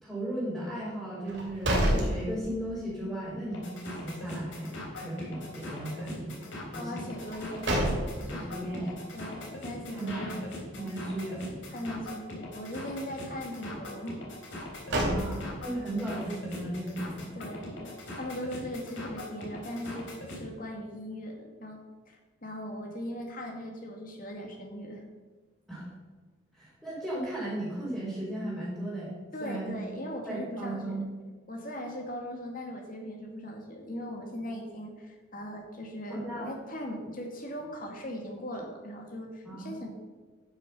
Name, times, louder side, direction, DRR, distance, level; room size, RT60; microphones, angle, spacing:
voice 1, 0.0-6.4 6.7-7.1 8.3-9.0 9.9-10.3 10.8-11.7 14.9-17.3 25.7-25.9 26.5-29.8 30.3-31.0 36.1-36.5 39.4-39.8, right 1 dB, 5° right, -11 dB, 3.7 m, -36 dB
sound 1, 1.2-2.9 3.3-3.4 7.2-8.5 14.5-15.8, right 1 dB, 65° right, 2.9 m, -29 dB
sound 2, 3.5-20.4, left 1 dB, 70° left, 3.3 m, -41 dB
voice 2, 6.7-7.8 8.1-8.5 9.1-10.4 11.7-14.2 17.3-20.1 20.4-21.8 22.1-25.0 29.3-31.0 31.5-39.9, equal, 45° left, 1 dB, 2.1 m, -39 dB
12.0 x 6.5 x 5.5 m, 1.4 s
head